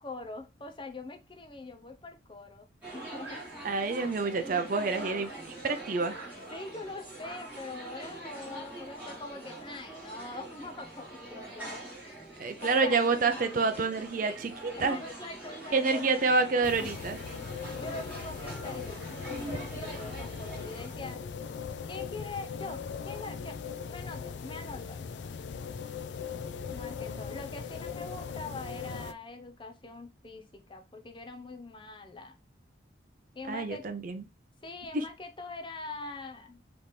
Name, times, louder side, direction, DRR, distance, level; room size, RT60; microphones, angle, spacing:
voice 1, 0.0-2.6 2.9-3.4 4.0-4.3 4.8-5.3 6.5-11.8 12.6-13.0 14.8-16.0 16.8-16.9 17.8-21.3 21.9-23.6 23.9-25.0 26.7-32.4 33.3-33.8 34.6-36.6, left 3 dB, 25° left, 0.6 m, -43 dB
sound 1, 2.8-21.0, right 2 dB, 5° right, 2.1 m, -44 dB
sound 2, 3.2-3.9 4.9-5.3 6.0-6.4 7.2-7.7, right 2 dB, 75° right, 1.0 m, -47 dB
voice 2, 3.6-5.3 5.6-6.1 12.4-15.0 15.7-17.2 33.5-34.2 34.9-35.1, right 4 dB, 45° right, 0.5 m, -28 dB
sound 3, 16.6-29.1, left 6 dB, 65° left, 0.4 m, -39 dB
4.1 x 3.4 x 3.1 m
head